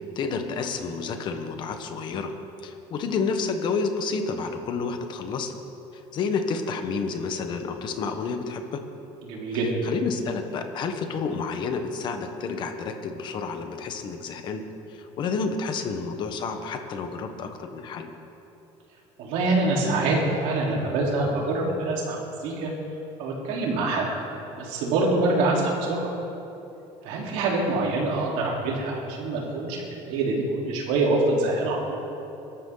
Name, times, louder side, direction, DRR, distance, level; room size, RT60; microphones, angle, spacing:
voice 1, 0.1-2.3 2.6-5.5 6.1-8.8 9.8-14.6 14.9-18.1, left 4 dB, 40° left, 6 dB, 1.3 m, -30 dB
voice 2, 9.2-9.7 19.2-22.2 22.4-22.7 23.2-24.1 24.5-26.1 27.0-32.0, right 2 dB, 80° right, -3 dB, 4.0 m, -25 dB
23.0 x 13.0 x 4.0 m, 2.9 s
cardioid pair, 170°, 12 cm